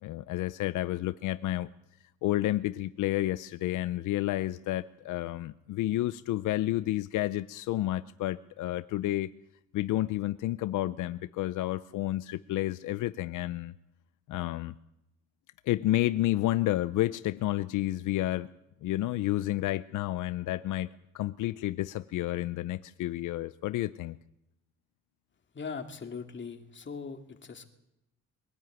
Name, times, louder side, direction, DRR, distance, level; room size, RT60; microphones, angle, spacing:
voice 1, 0.0-1.7 2.2-9.3 9.7-13.7 14.3-14.7 15.7-18.5 18.8-20.9 21.1-24.2, left 15 dB, 85° left, 14 dB, 0.6 m, -30 dB
voice 2, 25.5-27.7, left 5 dB, 40° left, 5 dB, 2.6 m, -40 dB
22.0 x 12.5 x 9.4 m, 0.87 s
cardioid pair, 90°, 30 cm